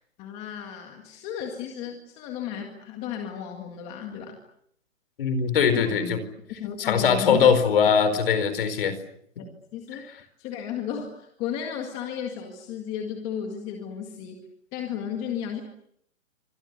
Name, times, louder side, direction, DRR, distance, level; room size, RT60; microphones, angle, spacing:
voice 1, 0.2-4.4 5.7-5.9 6.6-7.5 9.4-14.4 14.7-15.6, left 8 dB, 15° left, 3 dB, 2.0 m, -34 dB
voice 2, 5.2-6.2 6.8-9.0, left 6 dB, 40° left, 12 dB, 4.6 m, -21 dB
29.0 x 25.5 x 6.8 m, 0.71 s
hypercardioid pair, 165°, 40 cm